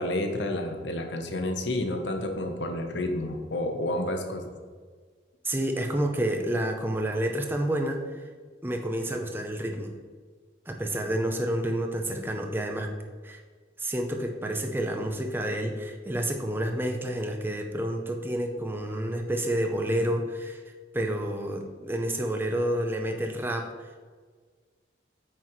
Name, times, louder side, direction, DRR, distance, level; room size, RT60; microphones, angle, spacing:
voice 1, 0.0-4.5, left 1 dB, 75° left, 4 dB, 1.0 m, -30 dB
voice 2, 5.4-8.3 8.6-10.0 10.7-12.9 13.2-13.4 13.8-23.7, right 1 dB, 10° right, 3 dB, 0.6 m, -29 dB
8.6 x 6.1 x 3.2 m, 1.5 s
head